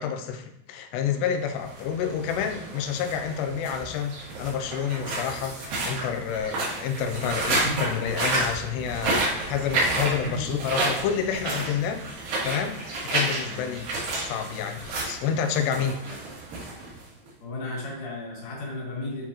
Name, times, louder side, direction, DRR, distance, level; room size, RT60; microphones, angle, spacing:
voice 1, 0.0-12.1 12.4-13.9 14.2-16.0, left 7 dB, 85° left, 7 dB, 2.7 m, -29 dB
sound 1, 1.6-17.3, right 2 dB, 60° right, 3.4 m, -30 dB
voice 2, 10.2-10.6 11.8-12.0 13.4-13.7 16.0-16.2 17.4-19.3, left 1 dB, 50° left, -4 dB, 2.4 m, -34 dB
8.3 x 4.6 x 2.9 m, 0.77 s
omnidirectional pair, 4.9 m